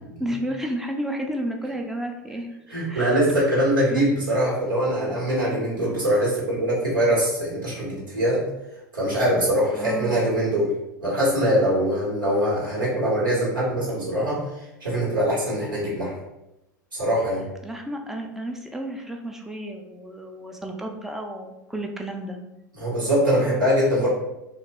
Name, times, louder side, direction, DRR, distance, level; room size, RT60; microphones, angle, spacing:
voice 1, 0.2-2.5 2.9-3.2 3.9-4.1 9.7-10.2 17.6-22.4, right 1 dB, 5° right, 2 dB, 0.4 m, -32 dB
voice 2, 2.7-8.4 8.9-10.7 11.0-16.1 16.9-17.4 22.8-24.1, equal, 85° right, -7 dB, 1.3 m, -23 dB
2.9 x 2.5 x 3.0 m, 0.93 s
figure-of-eight pair, 85°, 11 cm